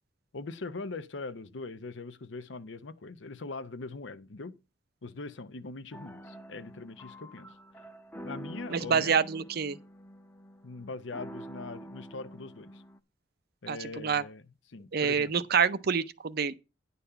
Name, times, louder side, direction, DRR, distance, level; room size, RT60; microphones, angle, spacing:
voice 1, 0.3-4.6 5.0-7.6 8.2-9.1 10.6-12.8 13.6-14.4 14.7-15.5, left 3 dB, 85° left, 0.8 m, -41 dB
sound 1, 5.9-13.0, equal, 10° left, 0.7 m, -47 dB
voice 2, 8.7-9.8 13.7-14.2 14.9-16.5, right 6 dB, 60° right, 0.6 m, -27 dB
9.9 x 4.1 x 6.7 m
head